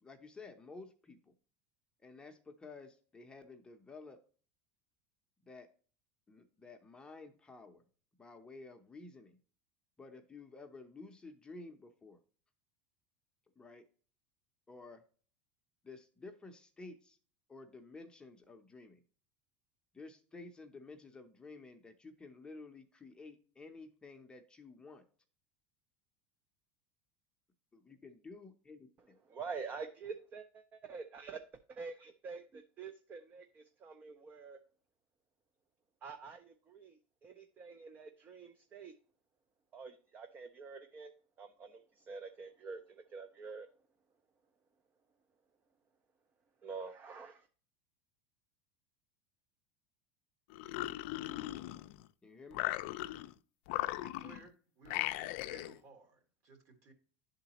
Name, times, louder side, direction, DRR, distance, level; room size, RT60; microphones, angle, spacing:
voice 1, 0.0-1.3 2.0-4.2 5.4-5.7 6.3-7.8 8.2-9.4 10.0-12.2 13.6-13.9 14.7-15.0 15.8-17.2 17.5-19.0 19.9-25.0 27.7-29.2 52.2-52.6, left 3 dB, 15° left, 0.7 m, -52 dB
voice 2, 29.2-31.4 31.7-34.6 36.0-38.9 39.7-41.1 41.4-43.7 46.6-47.5, right 5 dB, 30° right, 0.5 m, -47 dB
sound 1, 50.5-52.1 52.5-53.3 53.7-54.5 54.9-55.8, left 16 dB, 70° left, 0.4 m, -38 dB
voice 3, 54.0-56.9, right 4 dB, 45° right, 1.8 m, -58 dB
10.5 x 3.9 x 2.9 m
supercardioid pair, 125°, 6 cm